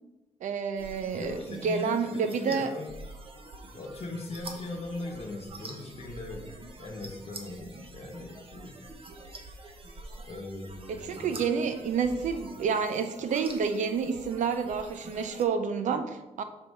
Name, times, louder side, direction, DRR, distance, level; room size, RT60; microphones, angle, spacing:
voice 1, 0.4-2.7 10.9-16.4, right 6 dB, 85° right, 8 dB, 0.6 m, -29 dB
sound 1, 0.8-15.4, right 2 dB, 50° right, 1.1 m, -46 dB
voice 2, 1.1-2.9 3.7-6.5 6.8-8.8 10.3-11.3, left 2 dB, 55° left, 0 dB, 0.9 m, -39 dB
6.2 x 4.5 x 5.3 m, 1.0 s
cardioid pair, 100°, 12 cm